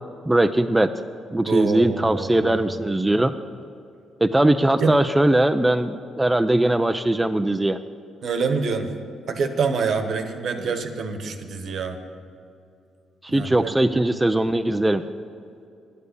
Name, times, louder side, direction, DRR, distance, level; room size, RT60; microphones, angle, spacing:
voice 1, 0.3-0.9 1.3-3.3 4.2-7.8 10.6-10.7 13.2-15.0, right 1 dB, 10° right, 8 dB, 0.4 m, -20 dB
voice 2, 1.5-2.9 4.8-4.9 8.2-8.9 9.3-12.0 13.3-14.0, right 4 dB, 60° right, 7 dB, 1.1 m, -26 dB
11.0 x 8.3 x 8.1 m, 2.6 s
cardioid pair, 90°, 0 cm